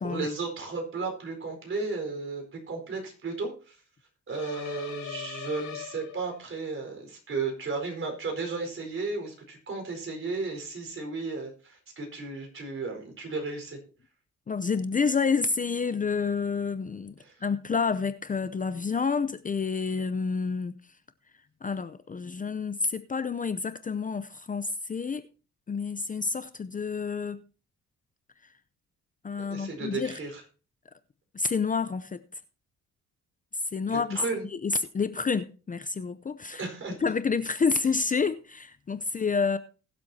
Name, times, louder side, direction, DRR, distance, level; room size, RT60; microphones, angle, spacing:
voice 1, 0.0-3.7 4.3-13.8 17.2-17.3 29.5-30.4 33.9-34.4 36.6-37.0, right 3 dB, 45° right, 4.6 m, -34 dB
sound 1, 4.3-6.6, left 9 dB, 75° left, 2.3 m, -41 dB
voice 2, 14.5-20.8 21.6-25.2 25.7-27.4 29.2-30.1 31.3-32.2 33.7-34.2 34.5-36.7 37.0-39.6, left 5 dB, 25° left, 0.6 m, -29 dB
20.5 x 7.7 x 2.8 m
cardioid pair, 90°, 30 cm